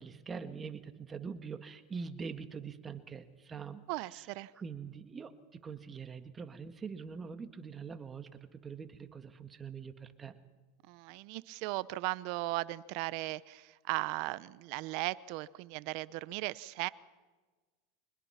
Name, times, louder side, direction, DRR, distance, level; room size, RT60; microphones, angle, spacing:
voice 1, 0.0-3.8 4.1-4.2 4.6-10.4, right 5 dB, 20° right, 8 dB, 1.8 m, -44 dB
voice 2, 3.9-4.5 10.9-16.9, right 20 dB, 60° right, 18 dB, 0.8 m, -37 dB
25.0 x 20.5 x 5.9 m, 1.3 s
supercardioid pair, 120°, 0 cm